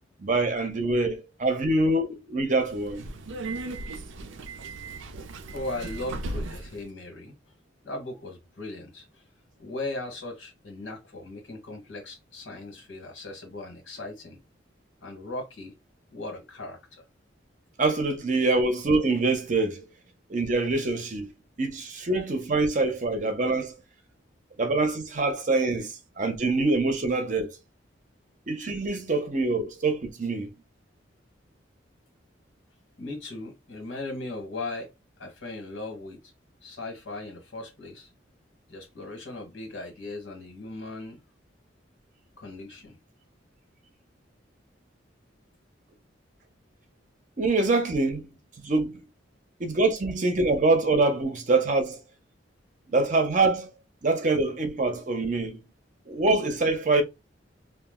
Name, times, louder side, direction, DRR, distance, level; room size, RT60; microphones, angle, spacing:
voice 1, 0.2-3.1 17.8-19.8 20.3-21.3 21.6-23.7 24.6-27.5 28.5-30.5 47.4-48.3 48.6-49.0 49.6-52.0 52.9-53.7 54.0-55.6 56.1-57.0, right 3 dB, 40° right, 0.6 m, -25 dB
Subway metro underground, 2.6-6.8, right 2 dB, 80° right, 0.5 m, -37 dB
voice 2, 5.5-7.3 7.8-9.1 9.6-14.4 15.0-15.7 16.1-16.8 33.0-34.9 35.2-36.2 36.6-38.1 38.7-41.2 42.4-43.0, left 2 dB, 85° left, 1.3 m, -38 dB
2.4 x 2.0 x 3.6 m
head